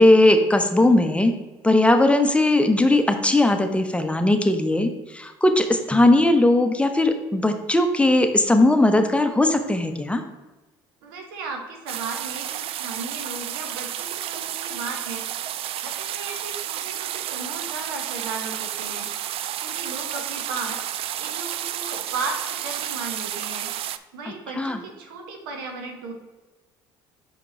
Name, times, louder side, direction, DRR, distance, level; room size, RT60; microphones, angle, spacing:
voice 1, 0.0-1.3 1.6-10.2 24.6-24.8, left 1 dB, 10° left, 7 dB, 0.9 m, -18 dB
voice 2, 11.0-15.3 15.8-19.1 19.6-23.7 24.1-26.1, right 3 dB, 80° right, 2 dB, 1.2 m, -35 dB
sound 1, 11.9-24.0, right 11 dB, 55° right, 0.4 m, -31 dB
5.9 x 5.0 x 4.3 m, 1.2 s
hypercardioid pair, 60°, 11 cm